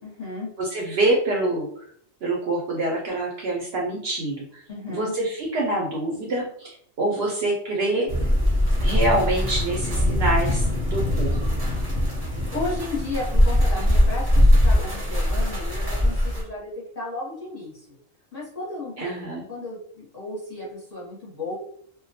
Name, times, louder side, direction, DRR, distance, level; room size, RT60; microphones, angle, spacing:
voice 1, 0.0-0.5 4.7-5.1 11.9-16.7 16.9-17.8 18.3-21.6, left 2 dB, 35° left, -6 dB, 0.8 m, -34 dB
voice 2, 0.6-1.9 2.2-4.6 4.9-8.1 8.8-11.4 19.0-19.5, right 2 dB, 65° right, -1 dB, 0.7 m, -26 dB
sound 1, 8.1-16.4, left 1 dB, 25° right, 0.6 m, -21 dB
2.2 x 2.1 x 2.7 m, 0.62 s
omnidirectional pair, 1.3 m